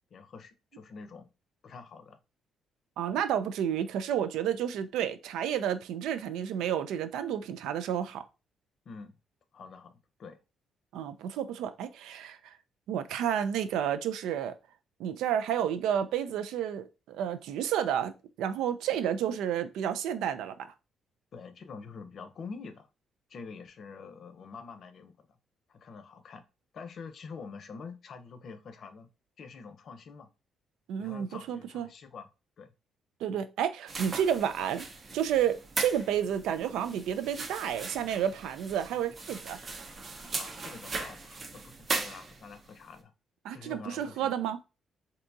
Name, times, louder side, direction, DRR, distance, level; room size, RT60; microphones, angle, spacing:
voice 1, 0.1-1.3 1.6-2.2 3.1-3.2 8.9-9.1 9.5-10.4 21.3-22.9 23.3-25.2 25.7-26.4 26.7-29.1 29.4-30.3 31.0-32.3 32.6-32.7 40.4-43.1 43.5-44.3, left 5 dB, 55° left, 0.6 m, -46 dB
voice 2, 3.0-8.2 10.9-12.6 12.9-14.6 15.0-18.1 18.4-20.7 30.9-31.9 33.2-34.9 35.1-39.6 43.4-44.6, right 9 dB, 90° right, 0.3 m, -31 dB
sound 1, 33.9-42.7, right 3 dB, 40° right, 0.6 m, -39 dB
3.5 x 2.7 x 2.6 m
cardioid pair, 90°, 0 cm